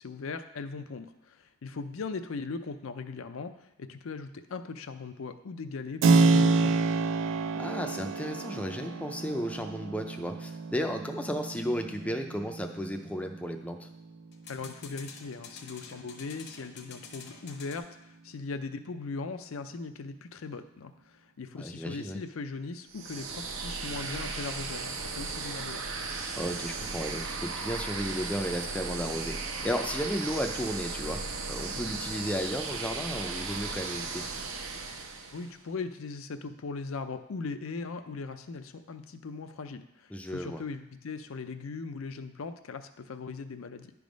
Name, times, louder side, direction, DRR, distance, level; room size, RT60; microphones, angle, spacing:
voice 1, 0.0-6.8 14.5-25.8 35.3-43.9, left 4 dB, 80° left, 9 dB, 0.5 m, -39 dB
Keyboard (musical), 6.0-14.6, right 4 dB, 65° right, 0.3 m, -28 dB
voice 2, 7.6-13.9 21.6-22.2 26.4-34.2 40.1-40.6, equal, 5° left, 4 dB, 0.4 m, -34 dB
sound 1, 11.3-11.5 14.3-17.8, left 5 dB, 55° left, 0.8 m, -49 dB
sound 2, 22.9-35.6, right 4 dB, 85° right, 0.8 m, -36 dB
10.0 x 3.5 x 5.1 m, 0.86 s
head